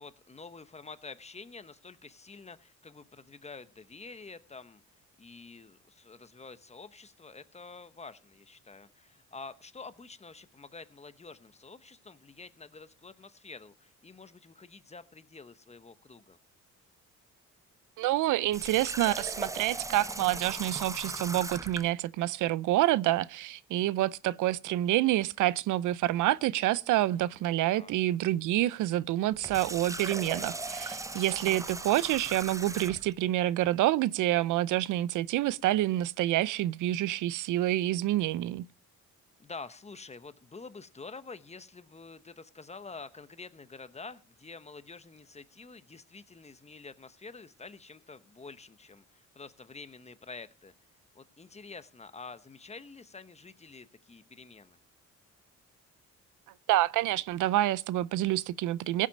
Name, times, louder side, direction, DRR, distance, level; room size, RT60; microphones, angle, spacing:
voice 1, 0.0-4.8 5.2-16.4 27.1-27.9 39.4-50.7 51.1-54.8, left 4 dB, 20° left, 1.0 m, -48 dB
voice 2, 18.0-38.6 56.7-59.1, right 15 dB, 80° right, 0.5 m, -28 dB
Water tap faucet, 18.5-21.9 29.3-33.1, right 2 dB, 10° right, 0.5 m, -38 dB
16.5 x 7.6 x 5.2 m
cardioid pair, 90°, 30 cm